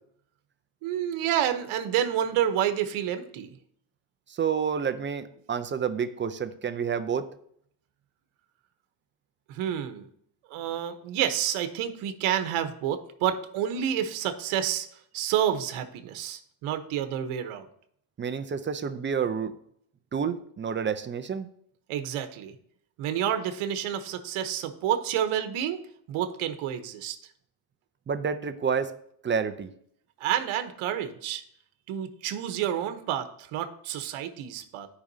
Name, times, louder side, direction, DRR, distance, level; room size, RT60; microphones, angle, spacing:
voice 1, 0.8-3.6 9.5-10.1 10.5-14.9 15.1-17.7 21.9-22.5 23.0-25.8 26.1-27.2 30.2-31.4 31.9-34.9, right 10 dB, 80° right, 8 dB, 1.1 m, -29 dB
voice 2, 4.3-7.3 18.2-19.5 20.1-21.5 28.1-28.9 29.2-29.7, right 6 dB, 25° right, 9 dB, 0.5 m, -29 dB
14.0 x 5.1 x 2.7 m, 0.67 s
cardioid pair, 120°, 49 cm